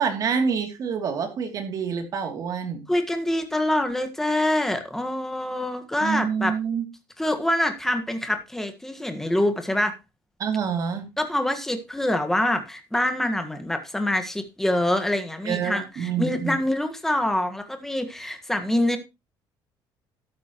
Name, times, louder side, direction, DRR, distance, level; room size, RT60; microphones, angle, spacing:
voice 1, 0.0-2.8 6.0-6.8 10.4-11.1 15.4-16.6, right 6 dB, 45° right, 5 dB, 2.8 m, -27 dB
voice 2, 2.9-6.5 7.2-9.9 11.2-19.0, left 1 dB, 5° left, 7 dB, 1.6 m, -25 dB
13.0 x 11.5 x 3.0 m, 0.25 s
cardioid pair, 170°, 9 cm